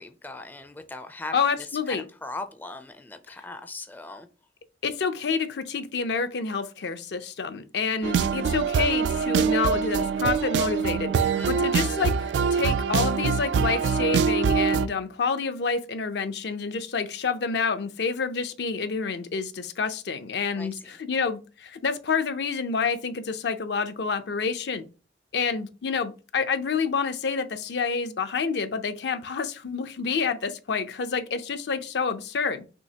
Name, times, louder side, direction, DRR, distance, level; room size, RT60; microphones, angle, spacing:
voice 1, 0.0-4.3 11.3-11.9 20.6-21.0, left 2 dB, 10° left, 0.4 m, -39 dB
voice 2, 1.3-2.0 4.8-24.8 25.3-32.6, left 5 dB, 70° left, 0.5 m, -28 dB
sound 1, 8.0-14.9, right 6 dB, 75° right, 0.3 m, -24 dB
6.3 x 2.8 x 2.8 m
head